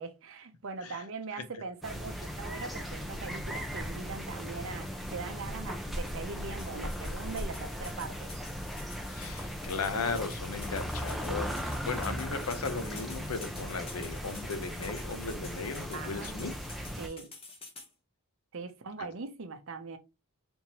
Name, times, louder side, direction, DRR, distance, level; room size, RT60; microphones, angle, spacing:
voice 1, 0.0-8.3 15.9-16.5 17.0-17.3 18.5-20.0, right 4 dB, 60° right, 0.6 m, -41 dB
sound 1, 1.8-17.1, equal, ahead, 0.5 m, -38 dB
sound 2, 2.9-9.7, equal, 20° right, 1.3 m, -44 dB
sound 3, 6.6-17.9, left 3 dB, 25° left, 0.8 m, -50 dB
voice 2, 9.0-16.5, left 4 dB, 75° left, 0.7 m, -36 dB
3.5 x 2.9 x 2.8 m
head